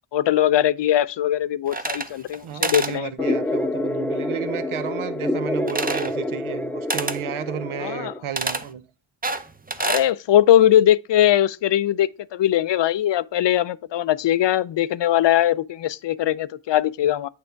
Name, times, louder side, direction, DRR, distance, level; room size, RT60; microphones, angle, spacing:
voice 1, 0.1-3.3 7.8-8.1 9.8-17.3, left 12 dB, 65° left, 0.5 m, -20 dB
sound 1, 1.7-2.4 2.6-3.0 5.7-6.1 6.9-7.2 8.4-8.7 9.2-10.1, right 3 dB, 20° right, 0.7 m, -27 dB
voice 2, 2.4-8.8, right 8 dB, 90° right, 0.8 m, -32 dB
sound 2, 3.2-8.2, left 1 dB, 5° left, 0.3 m, -27 dB
8.8 x 3.4 x 4.5 m
wide cardioid pair, 70°, 47 cm